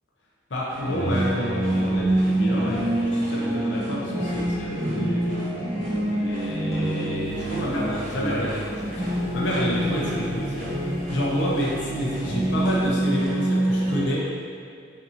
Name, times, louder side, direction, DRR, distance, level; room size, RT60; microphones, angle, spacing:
voice 1, 0.5-5.5 6.1-10.7 11.1-14.3, equal, 65° left, -5 dB, 0.6 m, -29 dB
sound 1, 0.7-14.0, right 1 dB, 50° right, 1.3 m, -26 dB
sound 2, 6.7-10.5, left 3 dB, 15° left, 0.7 m, -44 dB
sound 3, 7.0-13.1, equal, 45° left, 1.4 m, -44 dB
5.4 x 2.7 x 2.7 m, 2.2 s
head